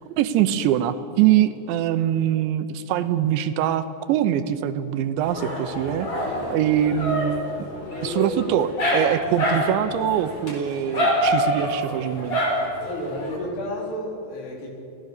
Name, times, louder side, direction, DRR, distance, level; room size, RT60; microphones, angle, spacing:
voice 1, 0.1-6.1 6.5-7.7 8.0-12.4, right 10 dB, 85° right, 10 dB, 3.2 m, -23 dB
Dog, 5.2-13.4, equal, 30° left, 4.9 m, -26 dB
voice 2, 6.8-7.3 7.9-8.5 12.8-14.7, left 1 dB, 70° left, -1 dB, 6.3 m, -32 dB
30.0 x 18.0 x 6.6 m, 2.7 s
omnidirectional pair, 5.1 m